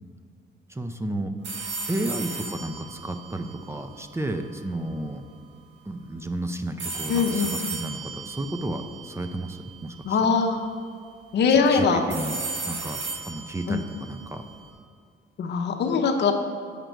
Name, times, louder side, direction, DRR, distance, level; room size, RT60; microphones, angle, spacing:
voice 1, 0.7-1.3 1.9-5.2 5.9-10.2 11.7-12.4 12.7-14.4, right 1 dB, 15° right, 7 dB, 0.5 m, -32 dB
sound 1, 1.4-4.5 6.8-9.9 12.1-14.7, right 3 dB, 65° right, 1.5 m, -36 dB
voice 2, 7.1-7.5 10.0-10.6 11.3-12.0 13.7-13.8 15.4-16.3, left 5 dB, 60° left, 3 dB, 0.8 m, -21 dB
7.7 x 5.2 x 4.6 m, 2.2 s
cardioid pair, 90°, 20 cm